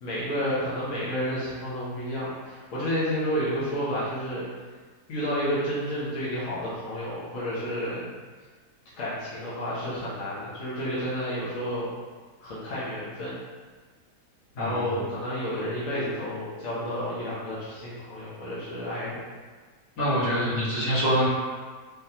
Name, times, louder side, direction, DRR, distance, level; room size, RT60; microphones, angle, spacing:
voice 1, 0.0-4.4 5.1-8.0 9.0-11.9 12.4-13.3 14.6-19.2, equal, 55° left, -10 dB, 1.3 m, -30 dB
voice 2, 14.5-14.9 20.0-21.3, equal, 75° left, -12 dB, 2.3 m, -25 dB
3.7 x 3.4 x 2.8 m, 1.5 s
omnidirectional pair, 1.7 m